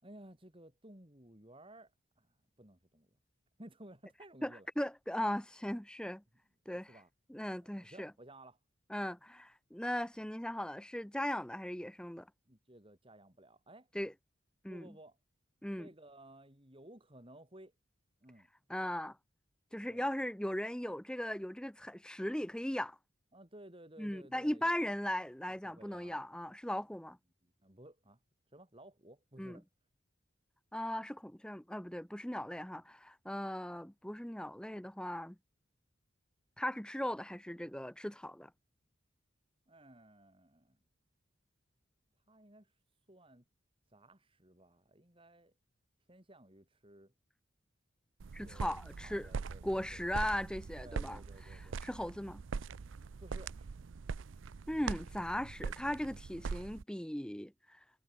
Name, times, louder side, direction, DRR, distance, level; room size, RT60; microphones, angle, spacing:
voice 1, 0.0-3.2 3.6-4.7 6.9-7.1 7.6-8.6 12.5-13.9 14.7-15.2 15.8-17.7 18.2-18.5 19.9-20.1 23.3-24.8 25.6-26.2 27.4-28.2 28.5-29.7 39.7-40.8 42.3-42.7 43.1-43.5 43.9-45.5 46.1-47.1 48.4-50.2 50.8-51.8 53.2-53.8, right 1 dB, 25° right, 3.6 m, -56 dB
voice 2, 4.4-6.2 6.7-6.9 7.3-8.1 8.9-12.3 13.9-14.1 14.6-14.9 15.6-15.9 18.7-19.2 19.7-23.0 24.0-27.2 29.4-29.6 30.7-35.4 36.6-38.5 48.3-49.3 49.6-51.2 51.8-52.4 54.7-57.8, left 1 dB, 5° left, 0.7 m, -38 dB
sound 1, 48.2-56.8, right 5 dB, 75° right, 0.5 m, -42 dB
head